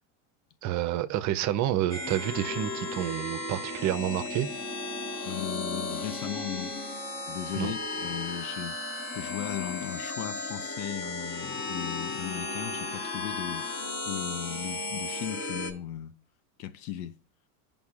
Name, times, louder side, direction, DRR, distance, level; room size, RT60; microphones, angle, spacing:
voice 1, 0.6-4.5 7.6-7.7, right 12 dB, 40° right, 0.6 m, -29 dB
sound 1, 1.9-15.7, left 3 dB, 35° left, 1.4 m, -35 dB
voice 2, 5.2-6.7 7.3-8.8 9.1-13.7 14.1-16.2 16.6-17.2, left 11 dB, 70° left, 0.7 m, -37 dB
11.0 x 5.2 x 2.4 m
supercardioid pair, 110°, 45 cm